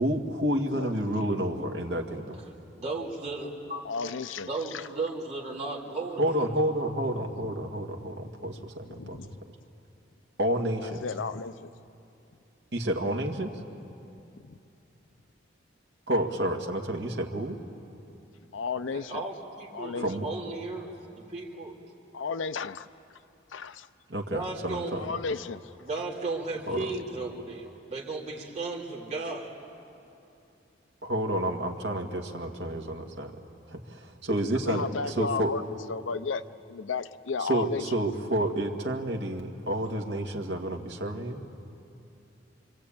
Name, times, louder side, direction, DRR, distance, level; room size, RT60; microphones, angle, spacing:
voice 1, 0.0-2.4 6.2-9.2 10.4-11.0 12.7-13.5 16.1-17.6 20.0-20.3 24.1-25.0 26.7-26.9 31.0-33.3 33.7-35.5 37.4-41.4, right 1 dB, 60° right, 1 dB, 2.0 m, -30 dB
voice 2, 2.8-3.8 4.5-6.5 18.9-21.8 24.3-25.0 25.8-29.5, right 3 dB, 35° right, -4 dB, 3.6 m, -35 dB
voice 3, 3.8-4.9 7.4-7.5 8.5-9.3 10.8-11.7 14.4-14.5 18.5-19.2 19.7-20.1 22.1-22.9 23.5-23.9 25.0-25.7 34.6-35.6 35.9-37.8, left 5 dB, 80° left, 14 dB, 0.6 m, -34 dB
26.0 x 25.5 x 8.8 m, 2.8 s
head